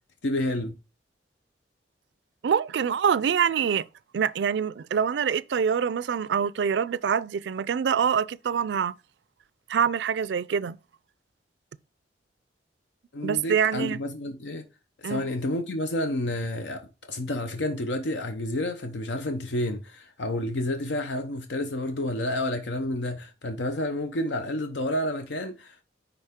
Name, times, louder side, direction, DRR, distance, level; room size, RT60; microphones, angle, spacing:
voice 1, 0.2-0.8 13.1-14.7 15.0-25.8, left 1 dB, 80° left, 0.7 m, -30 dB
voice 2, 2.4-3.9 4.1-8.9 9.7-10.8 13.2-14.0 15.0-15.2, right 7 dB, 70° right, 0.4 m, -25 dB
9.8 x 3.9 x 3.6 m
head